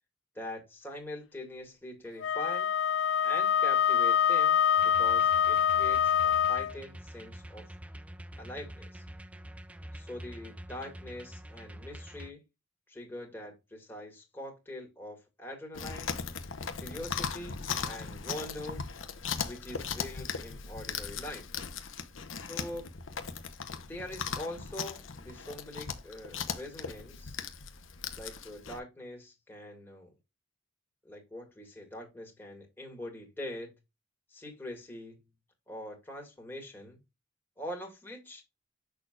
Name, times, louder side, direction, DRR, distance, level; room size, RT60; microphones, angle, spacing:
voice 1, 0.4-2.7 3.2-4.6 4.8-7.7 8.4-9.0 9.9-12.4 12.9-16.2 16.8-18.8 19.5-21.5 22.4-22.8 23.8-27.4 28.2-30.1 31.0-33.7 34.3-35.2 35.7-37.0 37.6-38.4, left 1 dB, 10° left, 2.0 m, -43 dB
Wind instrument woodwind instrument, 2.2-6.7, left 8 dB, 65° left, 0.4 m, -25 dB
sound 1, 4.8-12.3, right 1 dB, 5° right, 0.4 m, -46 dB
Chewing mastication, 15.7-28.8, left 6 dB, 80° left, 1.0 m, -38 dB
6.5 x 6.2 x 2.4 m
head